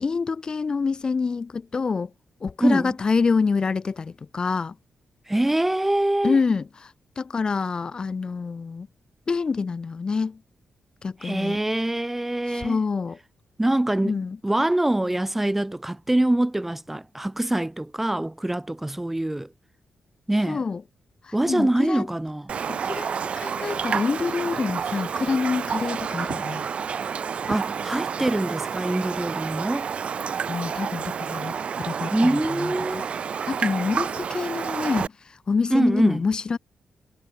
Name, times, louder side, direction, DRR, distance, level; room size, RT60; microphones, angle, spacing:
voice 1, 0.0-2.1 2.4-4.8 6.2-8.9 9.3-10.4 11.0-11.6 12.5-13.2 14.0-14.4 20.5-20.8 21.2-22.1 22.7-26.6 30.5-33.1 33.3-36.6, left 5 dB, 30° left, 0.8 m, -27 dB
voice 2, 2.6-2.9 5.3-6.4 11.2-12.8 13.6-19.5 20.3-20.6 21.3-22.5 27.5-29.9 32.1-33.1 35.7-36.2, right 1 dB, 10° right, 0.7 m, -24 dB
Raindrop, 22.5-35.1, right 7 dB, 45° right, 1.2 m, -29 dB
wide cardioid pair, 155°, 3 cm